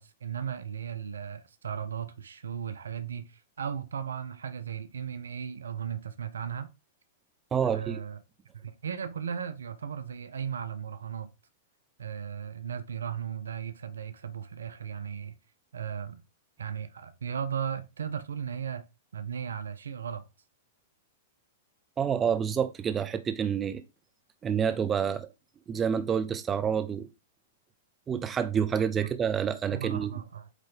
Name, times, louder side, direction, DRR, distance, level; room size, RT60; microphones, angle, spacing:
voice 1, 0.0-6.7 7.6-8.2 8.5-11.3 12.0-15.4 15.7-16.2 16.6-18.9 19.1-20.3 29.7-30.5, right 8 dB, 75° right, 0.6 m, -36 dB
voice 2, 7.5-8.0 22.0-23.8 24.4-25.3 25.7-27.1 28.1-30.1, right 7 dB, 20° right, 0.8 m, -28 dB
8.2 x 3.2 x 3.8 m
figure-of-eight pair, 105°, 0 cm